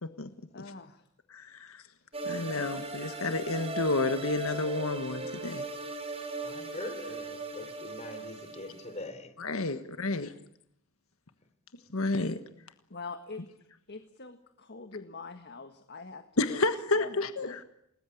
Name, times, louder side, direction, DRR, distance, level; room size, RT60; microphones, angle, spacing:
voice 1, 0.5-1.0 2.2-2.5 7.6-7.7 9.7-10.2 12.9-13.4 13.9-16.6 17.0-17.2 17.4-17.6, left 4 dB, 50° left, 8 dB, 1.7 m, -44 dB
voice 2, 1.3-1.8 2.3-5.7 9.4-10.3 11.9-12.4 16.4-17.6, left 2 dB, 75° left, 10 dB, 1.5 m, -30 dB
sound 1, 2.1-9.0, right 2 dB, 30° right, 5.2 m, -38 dB
voice 3, 6.4-9.7, left 2 dB, 30° left, 9 dB, 3.7 m, -43 dB
28.5 x 20.0 x 8.5 m, 0.77 s
head